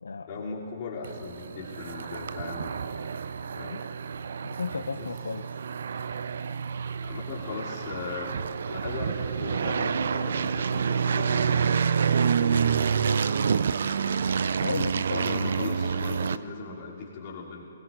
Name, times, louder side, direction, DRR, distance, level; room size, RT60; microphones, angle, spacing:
voice 1, 0.3-3.1 3.5-3.9 5.0-5.1 7.0-12.0 12.2-12.8 15.1-17.6, left 4 dB, 40° left, -4 dB, 3.0 m, -38 dB
sound 1, 1.0-16.4, right 6 dB, 60° right, 0.4 m, -28 dB
voice 2, 4.4-5.5 13.3-13.5 14.6-15.3, left 4 dB, 75° left, 9 dB, 0.4 m, -34 dB
21.5 x 20.0 x 2.6 m, 3.0 s
figure-of-eight pair, 130°, 0 cm